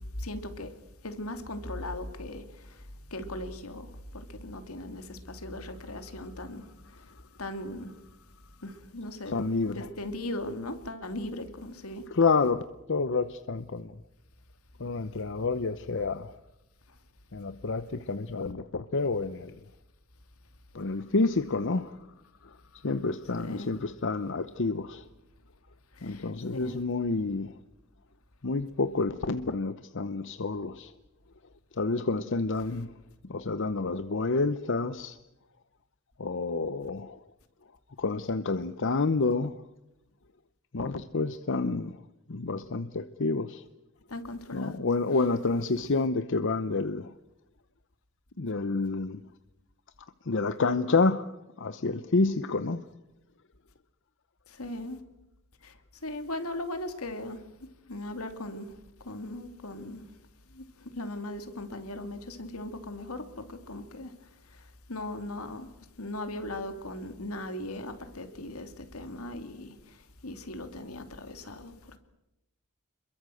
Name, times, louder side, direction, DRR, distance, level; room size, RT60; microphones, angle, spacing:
voice 1, 0.2-0.7 1.0-2.4 3.1-3.9 4.1-6.6 7.4-7.9 8.6-9.3 9.7-12.0 23.4-23.7 26.0-26.8 44.1-44.8 46.0-46.1 54.6-55.0 55.6-55.7 56.0-57.4 57.9-58.7 59.0-60.0 60.6-60.7 61.0-64.1 64.9-65.7 66.0-69.7 70.2-72.0, left 1 dB, 80° left, 2.8 m, -38 dB
voice 2, 9.3-9.9 12.1-12.6 12.9-14.0 14.8-16.4 17.3-19.6 20.7-22.0 22.4-25.1 26.0-27.6 28.4-30.9 31.7-33.0 33.2-35.2 36.2-37.2 38.0-39.6 40.7-43.6 44.5-47.1 48.4-49.3 50.2-52.9, left 3 dB, 60° left, 0.8 m, -29 dB
27.5 x 22.5 x 7.8 m
head